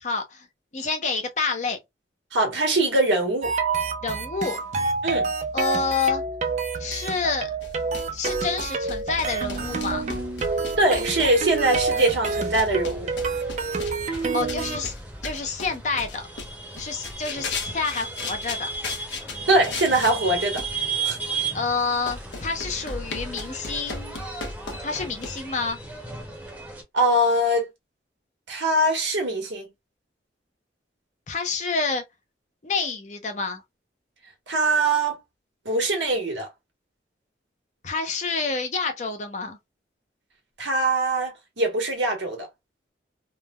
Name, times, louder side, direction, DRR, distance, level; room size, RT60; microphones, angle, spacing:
voice 1, 0.0-0.5 0.7-1.8 4.0-4.6 5.5-6.2 6.8-7.5 8.1-10.1 14.3-15.0 15.2-16.3 16.8-18.7 21.5-24.2 24.8-25.8 31.3-32.0 32.6-33.6 37.8-39.6, left 4 dB, 40° left, 0.6 m, -28 dB
voice 2, 2.3-3.5 5.0-5.3 10.8-13.1 19.5-20.6 21.0-21.2 26.9-27.7 28.5-29.6 34.5-35.2 35.6-36.5 40.6-42.5, right 1 dB, 85° right, 1.2 m, -22 dB
sound 1, 3.4-14.8, right 4 dB, 40° right, 0.4 m, -28 dB
sound 2, 7.6-20.2 20.4-20.9 21.7-21.8 22.1-25.4, left 3 dB, 80° left, 0.8 m, -37 dB
sound 3, 9.1-26.8, right 4 dB, 10° right, 0.7 m, -36 dB
3.1 x 2.1 x 2.2 m
head